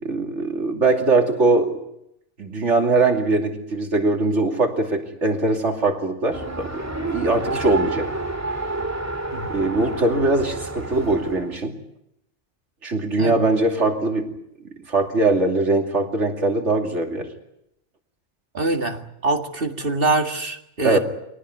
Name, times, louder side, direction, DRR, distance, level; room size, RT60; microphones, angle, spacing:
voice 1, 0.0-1.8 2.4-8.1 9.5-11.7 12.8-14.3 14.9-17.3 20.8-21.0, right 2 dB, 90° right, 3 dB, 3.1 m, -21 dB
Race car auto racing, 6.3-11.6, right 2 dB, 15° right, 2.2 m, -29 dB
voice 2, 18.5-21.0, right 2 dB, 50° right, 5 dB, 2.2 m, -24 dB
24.0 x 18.5 x 9.6 m, 0.81 s
omnidirectional pair, 1.2 m